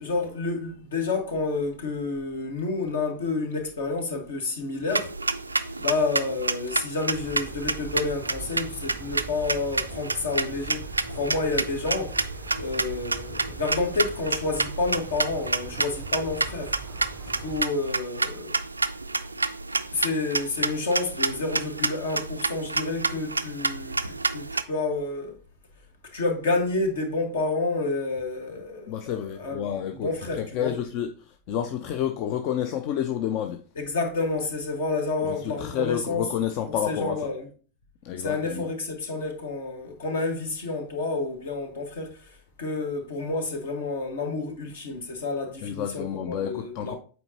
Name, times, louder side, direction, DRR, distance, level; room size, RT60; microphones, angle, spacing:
voice 1, 0.0-5.1 5.5-12.3 12.6-16.8 17.2-18.5 19.9-25.4 26.1-30.7 33.7-36.3 36.8-37.5 38.2-47.0, left 3 dB, 65° left, 1.5 m, -29 dB
sound 1, 4.9-24.6, right 3 dB, 80° right, 0.3 m, -29 dB
sound 2, 7.1-17.7, right 4 dB, 10° right, 0.5 m, -43 dB
voice 2, 28.9-30.1 30.4-31.1 31.5-33.6 35.2-37.3 38.0-38.6 45.6-47.0, left 9 dB, 45° left, 0.5 m, -29 dB
7.8 x 4.5 x 2.8 m
figure-of-eight pair, 90°, 0 cm